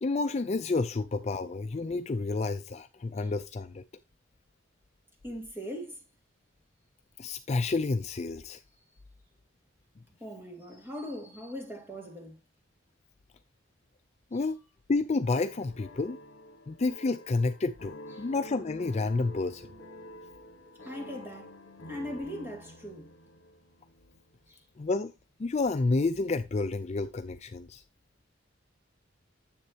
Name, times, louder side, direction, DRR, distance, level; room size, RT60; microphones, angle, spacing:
voice 1, 0.0-3.8 7.2-8.6 14.3-14.6 14.9-16.2 16.7-19.7 24.8-25.1 25.4-27.8, left 3 dB, 35° left, 0.4 m, -30 dB
voice 2, 5.2-6.0 10.2-12.4 14.3-14.4 18.2-18.3 20.8-21.6 21.9-23.1 24.5-24.6, equal, 10° right, 2.1 m, -40 dB
sound 1, 15.3-24.3, left 1 dB, 70° left, 1.3 m, -48 dB
9.8 x 7.5 x 2.8 m
head